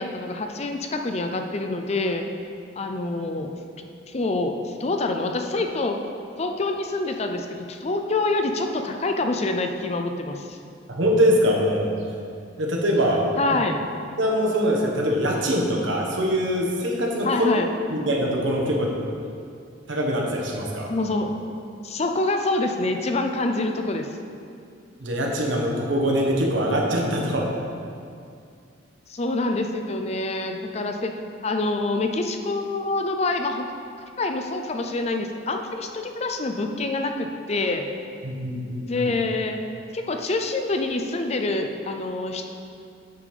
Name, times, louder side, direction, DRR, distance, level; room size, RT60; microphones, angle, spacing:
voice 1, 0.0-2.3 2.7-3.5 4.1-6.0 6.4-10.6 13.4-13.8 17.2-17.7 20.9-21.4 21.8-24.1 29.1-31.1 31.4-33.7 34.2-37.8 38.9-39.6 39.9-42.4, left 2 dB, 35° left, 5 dB, 0.5 m, -26 dB
voice 2, 10.9-11.9 12.6-13.3 14.2-17.5 17.9-19.0 19.9-20.9 25.0-27.5 38.2-39.1, equal, 90° right, -1 dB, 1.3 m, -23 dB
8.4 x 5.5 x 5.0 m, 2.4 s
head